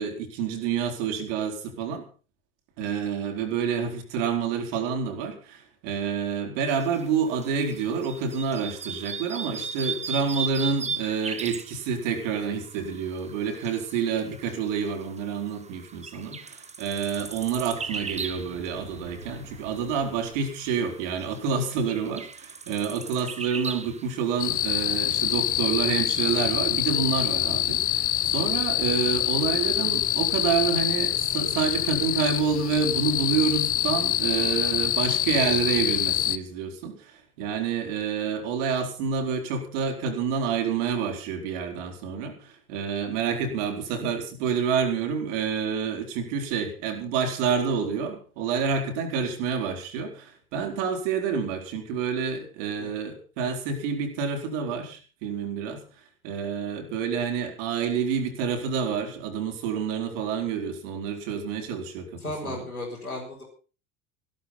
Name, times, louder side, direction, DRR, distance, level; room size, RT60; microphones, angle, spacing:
voice 1, 0.0-2.0 2.8-55.8 56.2-62.7, right 6 dB, 55° right, 4 dB, 4.6 m, -28 dB
sound 1, 6.7-25.6, right 5 dB, 15° right, 1.5 m, -38 dB
sound 2, 17.0-20.8, right 3 dB, 90° right, 3.5 m, -48 dB
sound 3, 24.4-36.4, left 12 dB, 30° left, 1.1 m, -25 dB
voice 2, 62.2-63.4, left 1 dB, 90° left, -6 dB, 5.0 m, -35 dB
16.5 x 13.0 x 5.7 m, 0.37 s
figure-of-eight pair, 70°, 43 cm